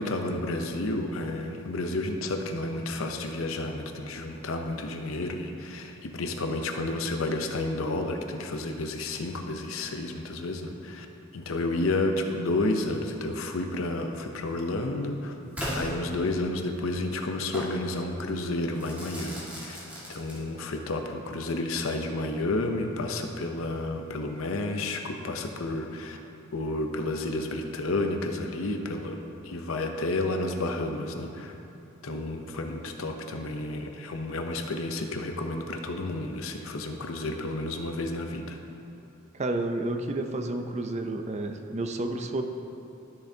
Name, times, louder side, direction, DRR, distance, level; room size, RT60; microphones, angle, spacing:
voice 1, 0.0-11.1 11.3-15.4 15.7-19.8 20.1-26.2 26.5-31.5 32.0-38.6, left 2 dB, 75° left, 4 dB, 0.7 m, -31 dB
Crackle / Fireworks, 15.6-16.7 17.5-17.8 18.8-20.8, equal, 5° right, 1.8 m, -37 dB
voice 2, 39.3-42.4, right 2 dB, 35° right, 6 dB, 0.5 m, -30 dB
12.5 x 6.9 x 2.8 m, 2.8 s
head